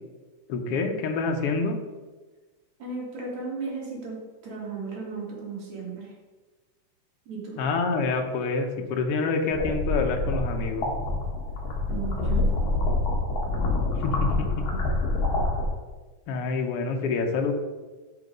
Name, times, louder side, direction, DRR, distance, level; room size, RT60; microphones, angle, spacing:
voice 1, 0.5-1.8 7.6-10.9 14.0-14.3 16.3-17.5, left 4 dB, 70° left, 4 dB, 1.4 m, -27 dB
voice 2, 2.8-6.1 7.3-7.6 11.9-12.5, right 4 dB, 65° right, -4 dB, 3.4 m, -35 dB
sound 1, 9.5-15.7, left 2 dB, 55° left, 2.2 m, -26 dB
6.7 x 5.6 x 5.2 m, 1.3 s
omnidirectional pair, 3.6 m